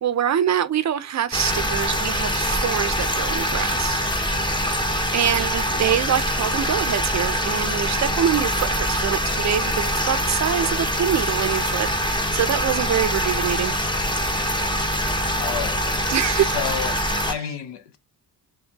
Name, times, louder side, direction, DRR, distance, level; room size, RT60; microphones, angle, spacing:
voice 1, 0.0-4.0 5.1-13.7 16.1-16.6, right 9 dB, 45° right, 0.5 m, -25 dB
sound 1, 1.3-17.3, equal, 10° left, 0.7 m, -24 dB
voice 2, 15.3-18.0, left 8 dB, 85° left, 0.7 m, -32 dB
4.3 x 2.2 x 2.8 m
cardioid pair, 95°, 40 cm